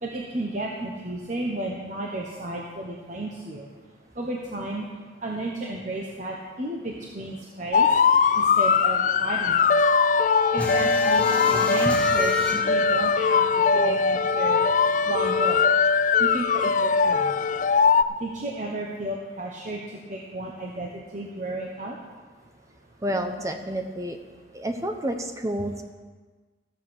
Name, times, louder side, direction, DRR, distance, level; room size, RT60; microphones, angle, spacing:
voice 1, 0.0-3.7 4.2-4.9 5.2-7.9 8.4-9.6 10.5-12.3 12.7-13.4 13.7-14.6 15.1-15.6 16.2-17.3 18.2-19.8 20.1-22.0, right 2 dB, 45° right, -1 dB, 1.1 m, -32 dB
sound 1, 7.7-18.0, left 5 dB, 45° left, 0.3 m, -21 dB
sound 2, 10.6-13.9 14.2-14.3 14.6-15.6, left 1 dB, 5° left, 1.1 m, -31 dB
voice 2, 23.0-24.2 24.5-25.8, right 1 dB, 20° right, 5 dB, 0.8 m, -29 dB
14.5 x 7.5 x 6.3 m, 1.4 s
head